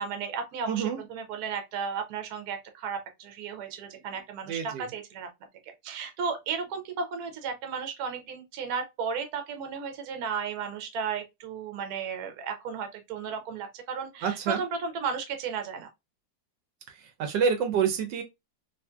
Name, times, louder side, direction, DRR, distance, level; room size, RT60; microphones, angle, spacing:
voice 1, 0.0-5.3 5.6-15.9, right 6 dB, 65° right, 1.1 m, -34 dB
voice 2, 0.7-1.0 4.5-4.9 14.2-14.6 16.9-18.2, right 7 dB, 80° right, 1.3 m, -28 dB
2.9 x 2.6 x 2.2 m
omnidirectional pair, 2.0 m